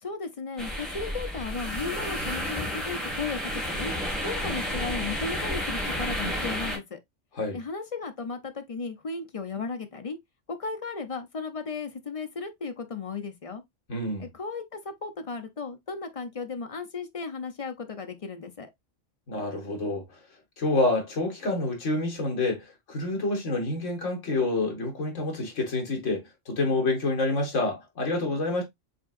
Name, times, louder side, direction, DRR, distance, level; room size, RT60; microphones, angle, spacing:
voice 1, 0.0-3.9 4.2-7.0 7.5-10.2 10.5-13.6 14.2-18.7, left 4 dB, 45° left, 0.5 m, -35 dB
sound 1, 0.6-6.8, equal, ahead, 1.7 m, -31 dB
voice 2, 13.9-14.3 19.3-20.0 20.6-28.6, left 2 dB, 70° left, 1.9 m, -28 dB
5.0 x 3.6 x 2.4 m
omnidirectional pair, 1.3 m